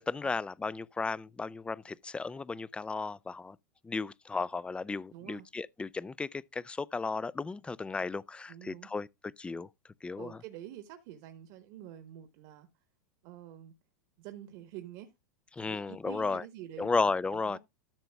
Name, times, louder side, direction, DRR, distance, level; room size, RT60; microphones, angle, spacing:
voice 1, 0.0-3.6 3.8-9.1 9.4-9.7 10.0-10.4 15.5-16.4 16.8-17.6, left 4 dB, 10° left, 0.4 m, -34 dB
voice 2, 5.1-5.5 8.5-8.9 10.2-12.7 13.2-13.7 14.2-15.1 15.6-17.6, right 12 dB, 55° right, 1.2 m, -47 dB
13.0 x 6.7 x 2.3 m
hypercardioid pair, 100°, 9 cm